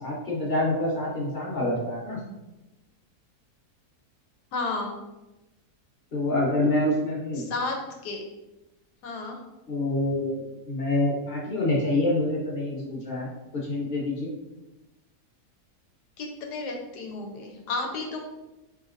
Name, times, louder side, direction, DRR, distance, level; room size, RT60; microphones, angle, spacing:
voice 1, 0.0-2.2 6.1-7.5 9.7-10.4 10.7-14.3, left 1 dB, 35° left, -4 dB, 1.0 m, -26 dB
voice 2, 4.5-5.0 7.3-7.7 8.0-8.2 9.0-9.4 16.2-18.2, left 3 dB, 90° left, 2 dB, 1.3 m, -32 dB
4.0 x 3.6 x 2.5 m, 0.99 s
omnidirectional pair, 1.7 m